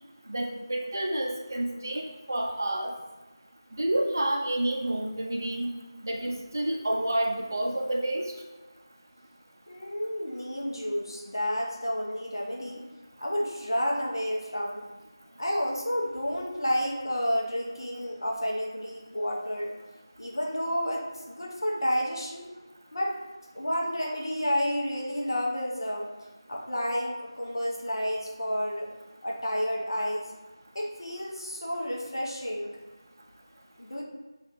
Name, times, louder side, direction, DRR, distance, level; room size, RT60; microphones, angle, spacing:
voice 1, 0.3-2.9 3.8-5.7 6.0-8.3, right 1 dB, 45° right, 1 dB, 0.5 m, -29 dB
voice 2, 9.7-12.8 13.2-14.8 15.4-19.7 20.2-22.4 22.9-23.1 23.5-26.1 26.5-28.9 29.2-30.3 30.7-32.7 33.8-34.0, equal, 60° left, -2 dB, 0.7 m, -30 dB
4.1 x 2.4 x 3.5 m, 1.2 s
figure-of-eight pair, 170°, 3 cm